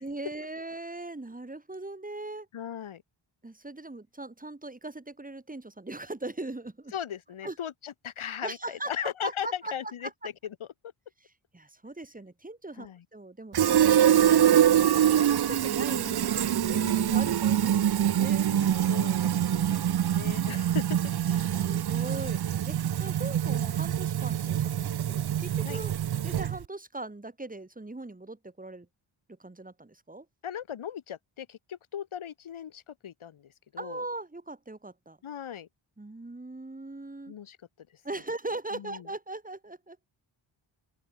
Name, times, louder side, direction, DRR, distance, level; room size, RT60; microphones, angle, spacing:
voice 1, 0.0-2.5 3.4-6.9 7.4-7.6 8.4-9.7 10.2-10.3 11.5-18.5 21.5-22.4 22.7-26.0 26.2-28.9 29.4-30.3 33.8-35.2 36.0-37.3 38.0-40.1, right 2 dB, 15° right, 6.1 m, -40 dB
voice 2, 2.5-3.0 6.9-10.7 12.8-13.0 16.6-17.3 18.5-21.6 25.6-25.8 30.4-34.0 35.2-35.7 37.3-37.6 38.7-39.1, left 9 dB, 85° left, 2.8 m, -38 dB
Fill (with liquid), 13.5-26.7, right 10 dB, 55° right, 0.7 m, -25 dB
open air
wide cardioid pair, 135°, 47 cm